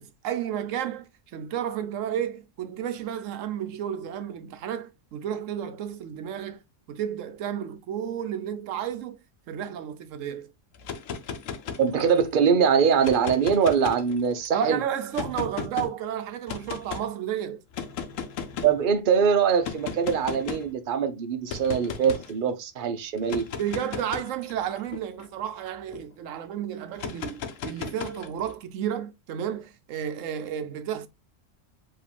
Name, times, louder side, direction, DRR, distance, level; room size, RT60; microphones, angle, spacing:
voice 1, 0.0-6.6 6.9-9.2 9.5-10.5 14.5-17.6 23.6-31.1, right 9 dB, 80° right, 1.0 m, -32 dB
sound 1, 10.7-12.3 12.9-14.5 15.1-15.9 16.5-17.1 17.7-18.8 19.6-20.7 21.5-22.3 23.2-26.0 27.0-28.5, left 6 dB, 90° left, 1.1 m, -36 dB
voice 2, 11.8-14.8 18.6-23.5, right 6 dB, 45° right, 0.8 m, -23 dB
4.9 x 3.1 x 3.4 m
omnidirectional pair, 1.3 m